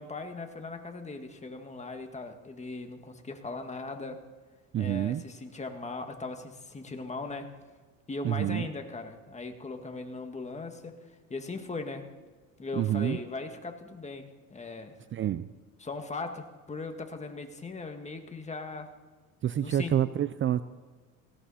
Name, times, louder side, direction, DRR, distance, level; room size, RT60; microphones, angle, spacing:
voice 1, 0.0-4.2 4.8-7.5 8.1-12.1 12.6-14.9 15.8-19.0 19.6-19.9, left 3 dB, 20° left, 5 dB, 1.9 m, -39 dB
voice 2, 4.7-5.2 8.2-8.7 12.7-13.2 15.1-15.5 19.4-20.6, right 11 dB, 35° right, 14 dB, 0.5 m, -28 dB
18.5 x 17.5 x 4.3 m, 1.4 s
supercardioid pair, 100°, 35 cm